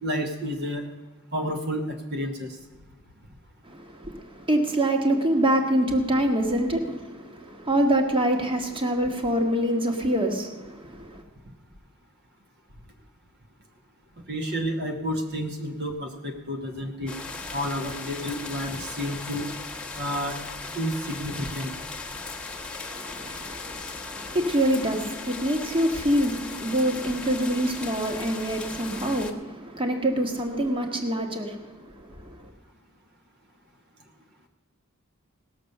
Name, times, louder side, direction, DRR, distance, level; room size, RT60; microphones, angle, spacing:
voice 1, 0.0-0.9 1.3-2.6 11.4-11.5 14.3-17.2 17.5-19.5 20.0-20.4 20.7-21.7, equal, 50° right, 1.2 m, -30 dB
voice 2, 3.6-11.2 22.9-32.5, right 1 dB, 25° right, 1.4 m, -26 dB
sound 1, 17.1-29.3, left 3 dB, 5° left, 1.1 m, -37 dB
18.0 x 6.9 x 6.6 m
head